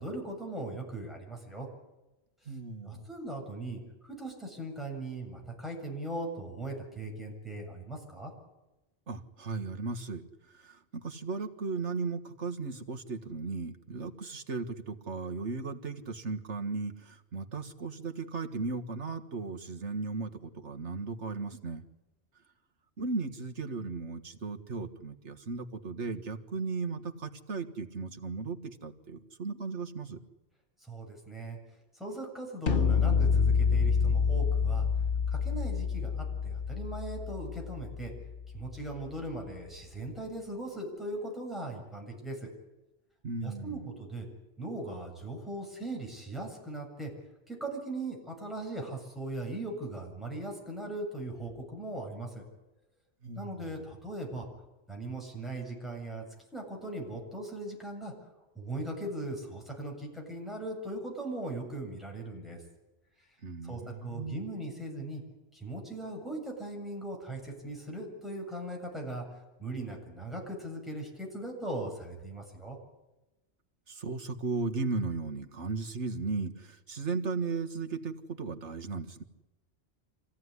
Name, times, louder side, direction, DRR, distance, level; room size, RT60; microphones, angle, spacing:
voice 1, 0.0-1.7 2.8-8.3 30.8-31.6 31.9-34.9 35.3-38.1 38.5-42.5 43.4-44.3 44.6-47.1 47.5-52.4 53.4-54.5 54.9-56.2 56.5-58.1 58.5-62.6 63.2-63.3 63.6-65.2 65.5-72.8, right 2 dB, ahead, 0 dB, 7.5 m, -39 dB
voice 2, 2.5-3.0 9.1-21.8 23.0-30.2 43.2-43.9 53.2-53.8 63.4-64.4 73.9-79.2, right 4 dB, 85° right, 5 dB, 2.0 m, -36 dB
sound 1, 32.7-38.6, left 5 dB, 85° left, 1.8 m, -28 dB
26.0 x 16.5 x 9.8 m, 1.0 s
omnidirectional pair, 1.2 m